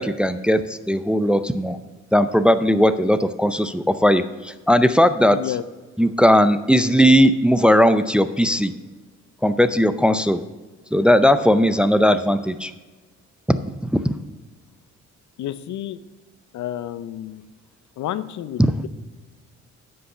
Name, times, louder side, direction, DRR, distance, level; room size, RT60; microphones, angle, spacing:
voice 1, 0.0-1.8 2.1-5.4 6.0-8.7 9.4-10.4 10.9-12.7 13.5-13.6 13.8-14.0, equal, 5° right, 11 dB, 0.4 m, -18 dB
voice 2, 5.3-5.6 15.4-16.0 16.5-17.4 18.0-18.9, left 12 dB, 70° left, 15 dB, 0.6 m, -30 dB
9.9 x 5.5 x 6.5 m, 1.3 s
cardioid pair, 90°, 30 cm